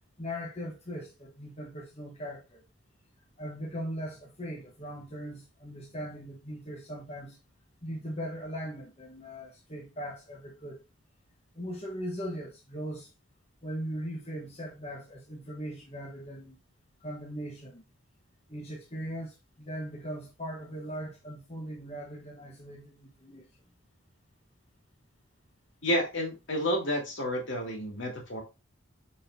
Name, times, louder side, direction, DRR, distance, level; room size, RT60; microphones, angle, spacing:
voice 1, 0.2-2.6 3.4-7.4 7.8-10.8 11.5-13.1 13.6-16.6 17.0-17.8 18.5-23.4, equal, 30° left, 1.4 m, -39 dB
voice 2, 25.8-28.4, equal, 60° left, 2.8 m, -30 dB
6.6 x 5.6 x 2.8 m
head